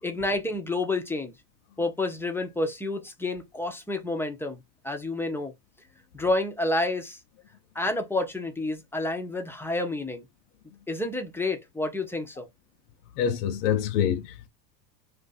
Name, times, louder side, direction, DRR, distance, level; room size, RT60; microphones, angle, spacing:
voice 1, 0.0-1.3 1.8-4.6 4.8-5.5 6.1-7.2 7.7-10.2 10.9-12.5, left 2 dB, 5° left, 0.6 m, -29 dB
voice 2, 13.2-14.5, left 9 dB, 75° left, 0.8 m, -26 dB
2.6 x 2.5 x 3.9 m
supercardioid pair, 115°, 48 cm